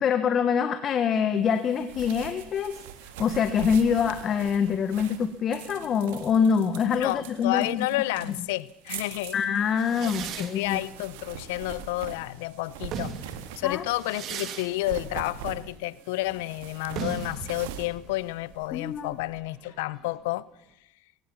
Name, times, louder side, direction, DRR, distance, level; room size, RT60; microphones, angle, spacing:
voice 1, 0.0-2.8 3.2-7.9 9.3-10.8 13.6-13.8 18.7-19.2, left 7 dB, 45° left, 1.5 m, -25 dB
sound 1, 1.5-14.1 14.6-18.9, right 9 dB, 85° right, 1.9 m, -43 dB
voice 2, 7.0-9.4 10.0-10.1 10.4-13.2 13.6-20.5, left 19 dB, 85° left, 0.7 m, -30 dB
sound 2, 9.8-12.2 12.7-20.2, right 7 dB, 55° right, 2.7 m, -40 dB
22.0 x 16.5 x 7.2 m
supercardioid pair, 95°, 0 cm